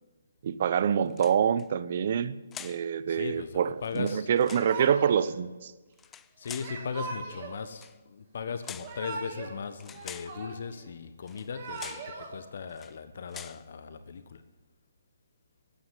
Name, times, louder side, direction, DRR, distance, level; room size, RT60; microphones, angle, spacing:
voice 1, 0.4-5.7, right 8 dB, 50° right, 15 dB, 0.9 m, -26 dB
sound 1, 1.1-1.7 2.5-2.9 3.8-4.7 5.9-6.8 7.7-8.0 8.6-9.0 9.8-10.4 11.3-11.5 11.8-12.1 12.7-13.0 13.3-13.6, left 9 dB, 15° left, 0.5 m, -45 dB
voice 2, 3.1-4.3 6.1-14.4, left 6 dB, 55° left, 10 dB, 1.2 m, -38 dB
Yell / Crying sobbing, 4.5-5.3 6.6-7.6 8.6-9.5 9.8-10.8 11.3-12.3, right 4 dB, 30° right, 5.6 m, -40 dB
14.5 x 9.5 x 9.1 m, 1.2 s
hypercardioid pair, 150°, 0 cm